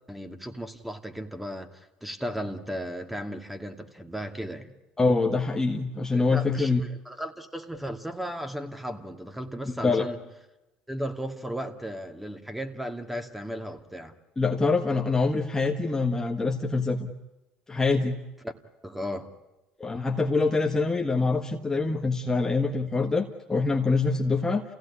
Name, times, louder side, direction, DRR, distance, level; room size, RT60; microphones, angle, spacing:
voice 1, 0.1-4.7 6.1-10.2 10.9-14.1 18.8-19.3, equal, 5° right, 2.4 m, -35 dB
voice 2, 5.0-6.8 9.7-10.1 14.4-17.1 17.7-18.2 19.8-24.6, left 3 dB, 20° left, 1.5 m, -25 dB
28.5 x 17.0 x 9.9 m
supercardioid pair, 80°, 3 cm